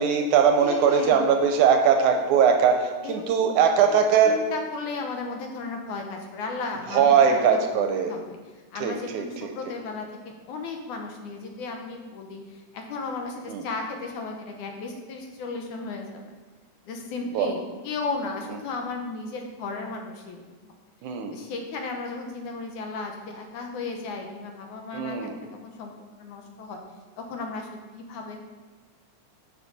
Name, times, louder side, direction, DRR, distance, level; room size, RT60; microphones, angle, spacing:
voice 1, 0.0-4.4 6.9-8.1 8.8-9.2 13.5-13.6 17.3-17.5 21.0-21.3 24.9-25.3, right 7 dB, 80° right, 4 dB, 1.9 m, -20 dB
voice 2, 0.6-1.2 3.0-3.5 3.9-8.4 8.7-16.3 16.9-20.4 21.3-25.9 26.2-26.8 27.2-28.4, left 3 dB, 75° left, 3 dB, 2.2 m, -35 dB
11.0 x 5.9 x 4.1 m, 1.3 s
omnidirectional pair, 3.8 m